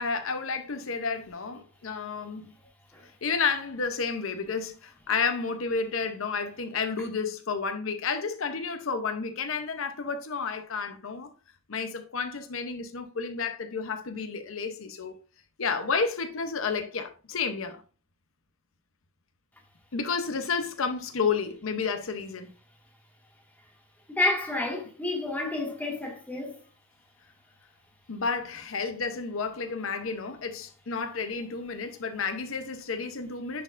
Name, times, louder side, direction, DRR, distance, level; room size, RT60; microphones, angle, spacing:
voice 1, 0.0-2.5 3.2-11.3 11.7-15.2 15.6-17.8 19.9-22.5 28.1-33.6, left 5 dB, 80° left, 0.7 m, -31 dB
voice 2, 24.1-26.6, left 2 dB, 10° left, 1.7 m, -30 dB
10.0 x 4.4 x 2.5 m
head